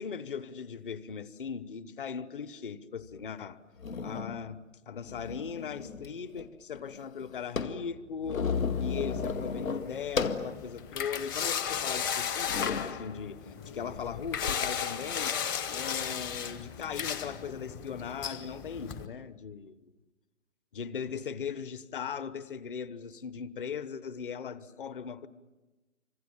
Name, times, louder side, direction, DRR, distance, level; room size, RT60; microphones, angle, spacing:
voice 1, 0.0-3.6 4.0-4.6 4.9-15.4 15.7-19.9 20.7-25.3, left 6 dB, 40° left, 1.2 m, -39 dB
sound 1, 3.1-3.2 3.8-4.4 5.0-6.1 6.4-6.5 6.7-10.5 11.1-11.2 11.9-12.0 12.5-13.0 13.9-14.5, left 5 dB, 70° left, 2.3 m, -34 dB
sound 2, 8.5-19.0, left 8 dB, 15° left, 0.8 m, -35 dB
30.0 x 26.0 x 7.3 m
figure-of-eight pair, 145°, 42 cm